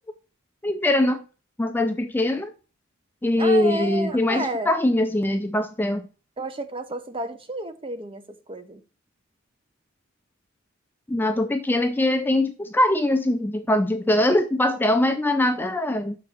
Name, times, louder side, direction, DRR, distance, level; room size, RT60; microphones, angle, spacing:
voice 1, 0.6-1.2 1.6-2.5 3.2-6.1 11.1-16.2, left 1 dB, 10° left, 0.5 m, -22 dB
voice 2, 3.4-4.7 6.4-8.8, right 2 dB, 25° right, 0.8 m, -31 dB
5.9 x 4.2 x 6.2 m
head